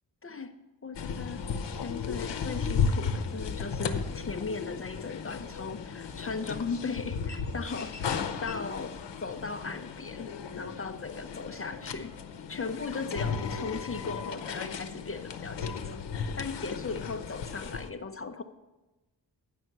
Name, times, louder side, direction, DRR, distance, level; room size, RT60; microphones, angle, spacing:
voice 1, 0.2-0.5 0.8-10.3 10.6-12.1 12.5-18.4, left 4 dB, 35° left, 8 dB, 0.5 m, -38 dB
sound 1, 0.9-17.9, left 5 dB, 80° left, 0.8 m, -35 dB
10.0 x 5.6 x 7.7 m, 1.1 s
wide cardioid pair, 145°, 42 cm